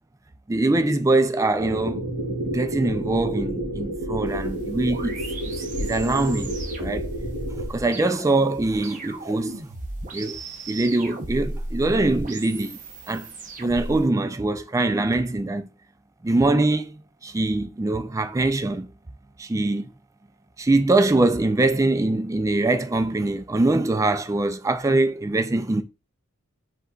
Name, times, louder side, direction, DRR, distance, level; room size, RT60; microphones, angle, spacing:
voice 1, 0.5-2.1 2.5-5.2 5.5-7.1 7.7-9.6 10.1-10.4 10.7-12.8 13.1-13.3 13.6-15.7 16.2-16.9 17.2-18.9 19.4-19.9 20.6-25.8, right 2 dB, 15° right, 0.3 m, -23 dB
sound 1, 1.6-7.7, right 1 dB, 60° right, 2.3 m, -30 dB
sound 2, 4.3-14.0, right 2 dB, 35° right, 0.7 m, -36 dB
5.3 x 3.8 x 2.3 m
head